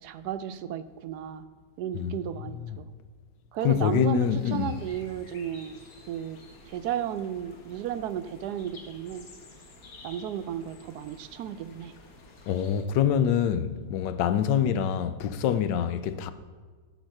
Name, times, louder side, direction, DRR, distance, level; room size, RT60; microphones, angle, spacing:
voice 1, 0.0-1.4 1.8-2.8 3.5-5.8 6.1-6.4 6.7-9.3 10.0-11.9, right 10 dB, 75° right, 1.0 m, -34 dB
voice 2, 1.9-2.8 3.6-4.7 12.5-16.3, left 8 dB, 90° left, 1.3 m, -26 dB
sound 1, 4.2-12.8, left 2 dB, 60° left, 1.7 m, -51 dB
14.5 x 5.0 x 6.5 m
omnidirectional pair, 1.9 m